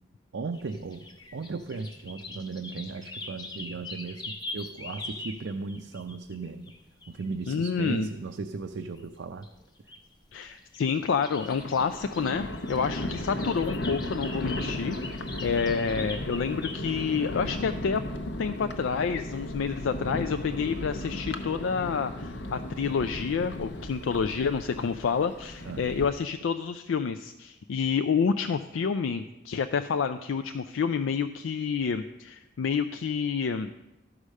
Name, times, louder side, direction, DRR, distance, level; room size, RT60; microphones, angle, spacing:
voice 1, 0.3-1.1 1.3-6.7 7.1-9.5 25.7-25.9, right 4 dB, 75° right, 5 dB, 0.5 m, -36 dB
sound 1, 0.5-7.8 8.8-9.0 9.3-10.0 10.4-17.2, left 2 dB, 20° left, 0.7 m, -43 dB
voice 2, 7.5-8.1 10.3-18.0 18.4-33.7, left 6 dB, 85° left, 9 dB, 0.4 m, -29 dB
Thunder, 11.3-26.1, left 1 dB, 65° left, 0.8 m, -36 dB
12.5 x 4.9 x 6.4 m, 0.96 s
head